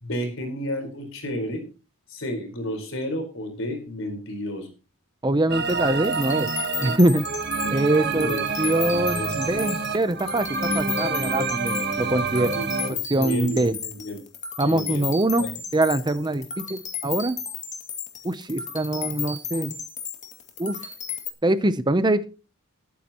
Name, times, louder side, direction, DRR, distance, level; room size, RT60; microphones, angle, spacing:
voice 1, 0.0-1.6 2.1-4.7 8.2-8.4 9.1-9.3 12.5-14.2 14.6-15.1 15.4-15.5, equal, 60° left, 6 dB, 4.5 m, -31 dB
voice 2, 5.2-6.5 6.8-7.3 7.7-8.3 8.6-10.5 10.7-12.6 13.1-13.8 14.6-15.5 15.7-17.4 18.2-19.8 20.6-20.8 21.4-22.3, right 1 dB, 20° right, 12 dB, 0.6 m, -23 dB
sound 1, 5.5-12.9, right 4 dB, 50° right, 1.5 m, -27 dB
sound 2, 5.7-21.3, left 7 dB, 35° left, 2.3 m, -34 dB
20.5 x 9.6 x 3.0 m, 0.33 s
head